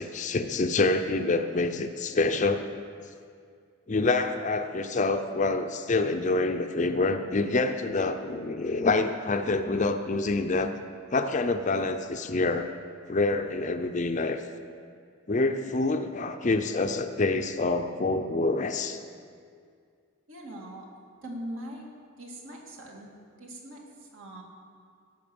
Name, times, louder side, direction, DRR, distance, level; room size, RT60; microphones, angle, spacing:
voice 1, 0.0-2.8 3.9-10.7 11.1-12.7 13.1-14.4 15.3-19.0, left 3 dB, 35° left, 8 dB, 0.5 m, -27 dB
voice 2, 20.3-20.9 21.2-21.9 22.2-23.1 23.4-24.4, right 1 dB, 70° right, -1 dB, 2.2 m, -41 dB
16.0 x 5.9 x 7.0 m, 2.2 s
head